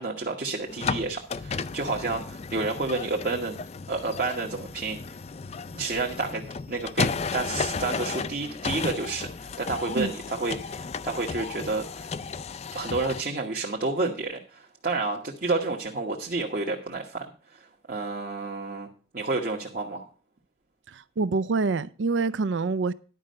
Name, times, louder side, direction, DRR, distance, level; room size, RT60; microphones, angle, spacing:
voice 1, 0.0-3.6 3.9-5.2 5.7-12.1 12.7-18.9 19.1-20.1, right 3 dB, 50° right, 1.2 m, -30 dB
sound 1, 0.7-13.2, left 5 dB, 35° left, 0.4 m, -34 dB
voice 2, 20.9-22.9, right 4 dB, 90° right, 0.5 m, -26 dB
11.0 x 5.3 x 6.6 m
head